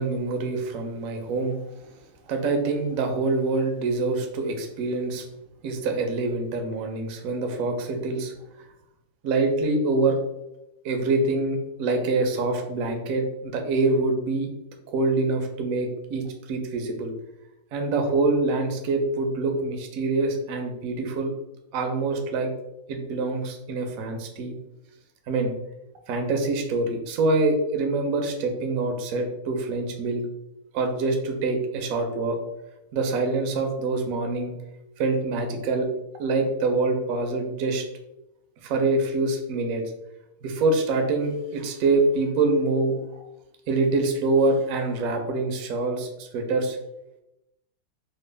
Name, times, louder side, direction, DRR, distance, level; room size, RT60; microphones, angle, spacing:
voice 1, 0.0-1.9 2.3-5.2 5.6-8.3 9.2-10.2 10.8-14.5 14.9-17.1 17.7-21.3 21.7-22.5 22.9-24.5 25.3-25.5 26.1-30.2 30.7-32.4 32.9-34.5 35.0-35.9 36.2-37.8 38.6-39.8 40.4-43.0 43.7-46.8, right 3 dB, 75° right, 3 dB, 0.8 m, -25 dB
4.3 x 2.2 x 3.2 m, 0.90 s
omnidirectional pair, 2.1 m